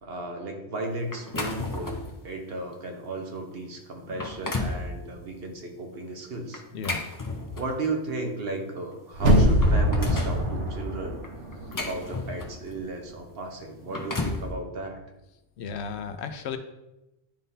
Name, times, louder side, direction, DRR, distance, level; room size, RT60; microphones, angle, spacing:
voice 1, 0.0-6.6 7.5-11.2 11.8-15.0, right 2 dB, 60° right, 2 dB, 1.1 m, -35 dB
sound 1, 1.1-2.2 2.7-2.9 3.5-3.6 4.0-4.8 6.5-7.9 8.9-9.0 9.3-10.4 11.2-12.7 13.7-14.5, left 2 dB, 25° left, 0.5 m, -33 dB
sound 2, 9.1-12.1 12.4-12.5, equal, 85° right, 1.3 m, -23 dB
voice 2, 15.6-16.6, left 6 dB, 70° left, 8 dB, 0.8 m, -34 dB
10.5 x 3.6 x 2.7 m, 0.95 s
omnidirectional pair, 1.2 m